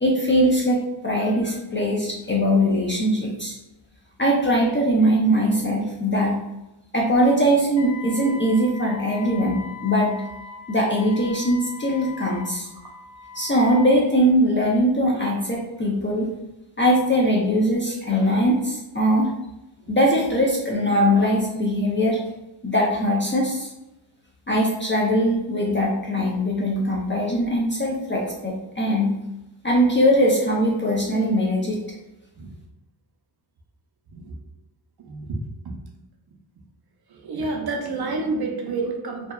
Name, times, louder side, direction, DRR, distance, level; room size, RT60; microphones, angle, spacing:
voice 1, 0.0-3.5 4.2-6.4 6.9-10.1 10.7-12.7 13.3-16.3 16.8-19.3 19.9-22.2 22.6-23.7 24.5-29.1 29.6-31.8, equal, 25° left, -3 dB, 0.3 m, -21 dB
Wind instrument woodwind instrument, 7.8-14.0, left 5 dB, 80° left, 0.8 m, -40 dB
voice 2, 35.0-35.7 37.1-39.3, right 3 dB, 50° right, 1 dB, 0.5 m, -29 dB
2.7 x 2.2 x 2.2 m, 0.95 s
wide cardioid pair, 130°, 49 cm